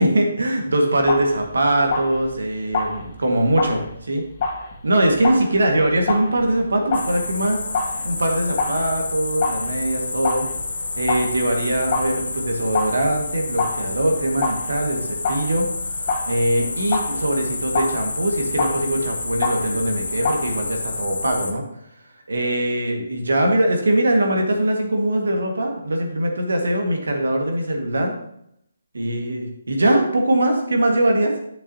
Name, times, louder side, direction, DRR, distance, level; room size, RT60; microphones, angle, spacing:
voice 1, 0.0-4.2 4.8-10.5 10.9-15.7 16.3-21.6 22.3-28.1 28.9-31.3, right 1 dB, 75° right, 2 dB, 1.7 m, -21 dB
sound 1, 1.0-20.6, left 3 dB, 40° left, 1.8 m, -29 dB
sound 2, 6.9-21.5, left 3 dB, 75° left, 0.9 m, -29 dB
9.3 x 7.0 x 2.8 m, 0.74 s
figure-of-eight pair, 145°, 0 cm